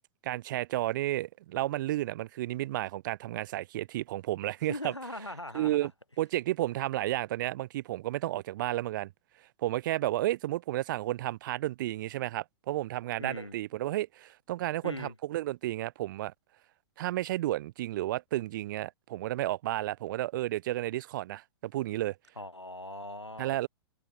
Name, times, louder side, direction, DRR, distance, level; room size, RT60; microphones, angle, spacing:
voice 1, 0.2-4.9 5.5-5.9 6.2-9.1 9.6-16.3 17.0-22.2 23.4-23.7, right 15 dB, 45° right, 0.4 m, -32 dB
voice 2, 4.7-5.9 13.2-13.6 14.8-15.1 22.4-23.7, left 1 dB, 90° left, 2.7 m, -40 dB
figure-of-eight pair, 105°, 14 cm